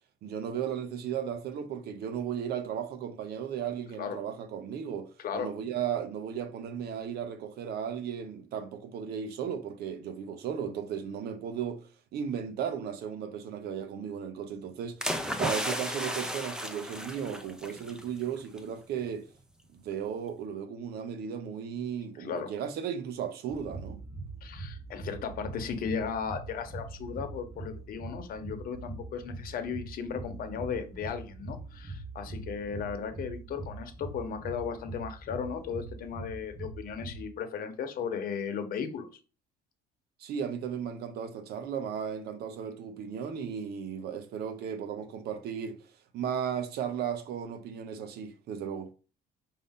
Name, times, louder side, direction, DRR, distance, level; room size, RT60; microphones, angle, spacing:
voice 1, 0.2-11.9 12.1-15.1 15.4-19.3 19.7-24.0 40.2-45.8 46.1-48.9, right 8 dB, 70° right, 0.8 m, -35 dB
voice 2, 5.2-5.5 22.2-22.5 24.4-39.1, left 6 dB, 60° left, 0.9 m, -36 dB
sound 1, 15.0-18.0 18.4-18.6, equal, 5° right, 0.6 m, -34 dB
sound 2, 23.5-37.2, right 3 dB, 20° right, 1.2 m, -42 dB
5.2 x 2.7 x 3.6 m
cardioid pair, 110°, 17 cm